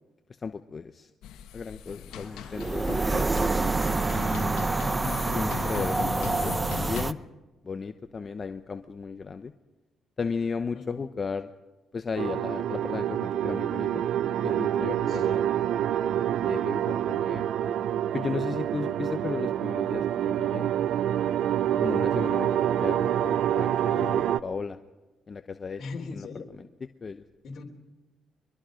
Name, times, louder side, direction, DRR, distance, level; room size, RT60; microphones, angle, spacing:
voice 1, 0.4-1.1 1.5-3.4 4.1-4.7 5.3-7.2 7.6-9.5 10.2-11.5 11.9-14.0 14.4-15.4 16.4-17.4 18.1-20.7 21.8-22.5 22.8-24.8 25.3-25.8 26.1-26.3 27.0-27.2, left 5 dB, 40° left, 9 dB, 0.9 m, -35 dB
sound 1, 1.2-7.0, left 10 dB, 90° left, 1.3 m, -39 dB
sound 2, 2.5-7.1, right 3 dB, 20° right, 0.7 m, -27 dB
voice 2, 4.9-5.3 10.7-11.0 15.1-15.5 25.8-26.5 27.4-27.6, left 4 dB, 55° left, 0 dB, 3.3 m, -40 dB
sound 3, 12.2-24.4, right 10 dB, 75° right, 0.6 m, -27 dB
24.0 x 22.5 x 5.1 m, 1.1 s
cardioid pair, 90°, 0 cm